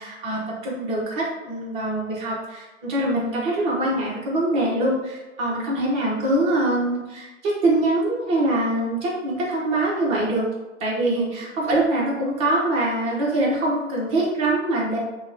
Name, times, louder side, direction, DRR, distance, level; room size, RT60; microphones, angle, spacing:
voice 1, 0.0-10.5 10.8-15.0, right 1 dB, 15° right, -5 dB, 0.6 m, -24 dB
2.9 x 2.1 x 3.8 m, 1.1 s
figure-of-eight pair, 115°, 39 cm